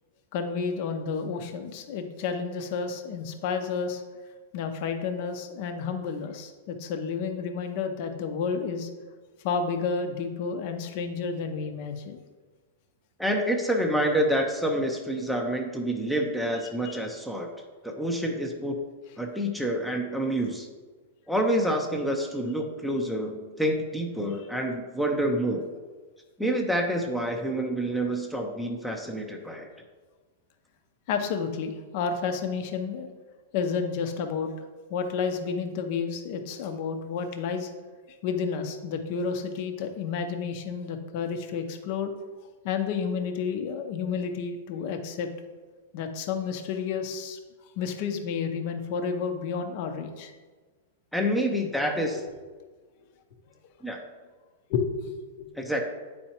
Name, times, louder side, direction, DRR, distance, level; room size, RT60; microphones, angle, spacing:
voice 1, 0.3-4.0 4.5-8.9 9.4-12.2 16.8-17.0 31.1-33.1 33.5-34.5 34.9-37.7 38.2-42.1 42.6-45.3 45.9-47.4 47.8-50.3 54.7-55.0 55.4-55.5, left 5 dB, 55° left, 6 dB, 0.8 m, -31 dB
voice 2, 13.2-17.5 17.8-18.8 19.2-20.7 21.3-25.7 26.4-29.7 51.1-52.2 53.8-54.0 55.6-55.8, equal, ahead, 1 dB, 0.6 m, -27 dB
8.7 x 4.3 x 2.9 m, 1.4 s
hypercardioid pair, 125°, 0 cm